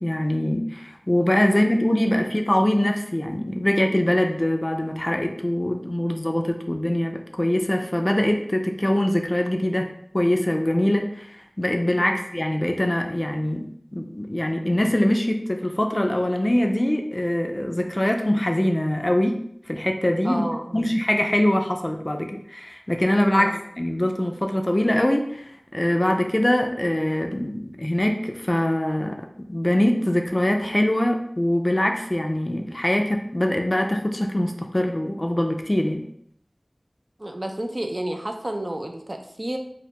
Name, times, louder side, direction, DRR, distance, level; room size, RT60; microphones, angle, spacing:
voice 1, 0.0-11.3 11.6-19.4 19.7-20.4 20.7-23.5 23.8-25.4 25.7-36.0, left 1 dB, 35° left, 4 dB, 0.3 m, -23 dB
voice 2, 12.0-12.3 20.2-20.9 23.3-23.6 37.2-39.6, right 1 dB, 45° right, 4 dB, 0.3 m, -31 dB
2.5 x 2.0 x 2.8 m, 0.66 s
wide cardioid pair, 45°, 0 cm